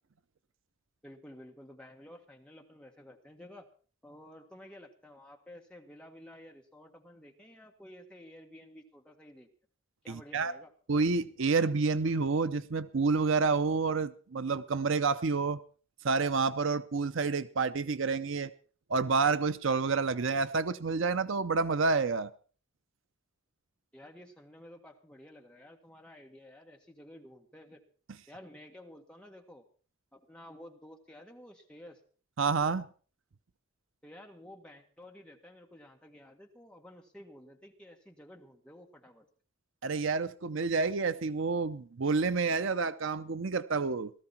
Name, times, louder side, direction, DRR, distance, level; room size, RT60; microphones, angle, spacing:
voice 1, 1.0-3.7 4.0-9.5 10.0-10.7 23.9-27.8 28.3-29.6 30.1-32.0 34.0-39.3, left 1 dB, 5° left, 1 dB, 1.7 m, -52 dB
voice 2, 10.1-10.5 10.9-15.6 16.0-18.5 18.9-22.3 32.4-32.9 39.8-44.1, right 4 dB, 65° right, 14 dB, 0.6 m, -29 dB
17.5 x 14.0 x 4.4 m, 0.41 s
head